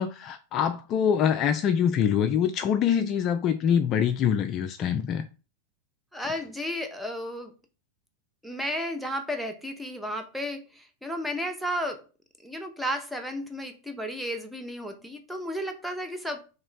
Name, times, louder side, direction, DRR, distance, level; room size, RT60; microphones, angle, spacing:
voice 1, 0.0-5.3, left 8 dB, 35° left, 0.3 m, -24 dB
voice 2, 6.1-7.5 8.4-12.0 12.4-16.4, equal, ahead, 0.6 m, -33 dB
3.0 x 2.9 x 3.9 m
figure-of-eight pair, 90°, 0 cm